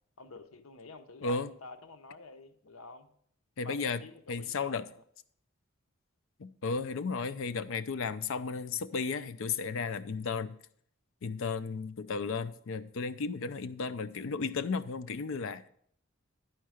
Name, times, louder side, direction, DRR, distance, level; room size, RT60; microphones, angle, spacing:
voice 1, 0.2-3.1 3.6-5.0, left 3 dB, 85° left, 0.9 m, -49 dB
voice 2, 3.6-4.0 4.3-4.9 6.4-10.6 11.2-15.7, left 4 dB, 65° left, 0.5 m, -34 dB
11.0 x 4.6 x 6.3 m
head